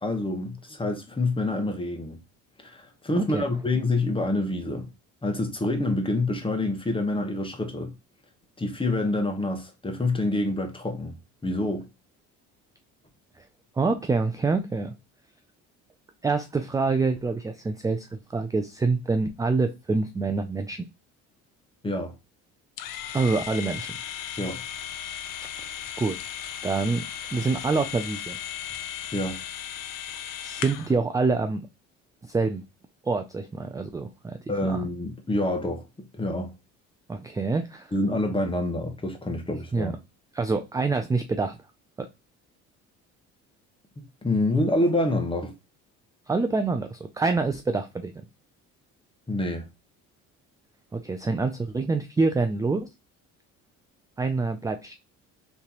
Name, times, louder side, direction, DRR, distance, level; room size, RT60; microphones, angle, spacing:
voice 1, 0.0-2.2 2.6-4.9 5.2-7.9 8.6-11.1 11.4-11.8 21.8-22.1 24.4-24.6 29.1-29.4 34.5-35.8 36.1-36.5 37.9-39.9 44.2-45.5 49.3-49.7, left 2 dB, 15° left, 1.1 m, -27 dB
voice 2, 3.1-3.5 13.4-13.5 13.8-15.0 16.2-20.9 23.1-23.9 26.0-26.2 26.6-27.0 27.3-28.4 30.4-31.7 32.2-32.6 33.0-34.8 37.1-37.9 39.7-39.9 40.3-41.6 42.0-42.1 46.3-48.3 50.9-52.9 54.2-55.0, right 3 dB, 10° right, 0.3 m, -26 dB
sound 1, 22.8-30.9, left 10 dB, 70° left, 0.7 m, -36 dB
3.4 x 3.2 x 2.9 m
supercardioid pair, 85°, 33 cm